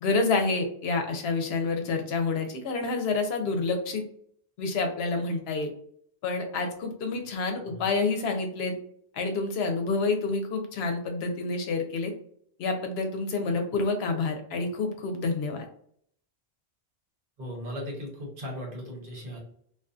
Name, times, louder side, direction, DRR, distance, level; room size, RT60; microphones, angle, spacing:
voice 1, 0.0-4.0 4.6-5.7 6.2-8.7 9.1-12.1 12.6-15.7, left 3 dB, 80° left, 5 dB, 0.8 m, -28 dB
voice 2, 17.4-19.4, equal, 60° right, -1 dB, 1.0 m, -37 dB
2.5 x 2.3 x 2.3 m, 0.64 s
omnidirectional pair, 1.0 m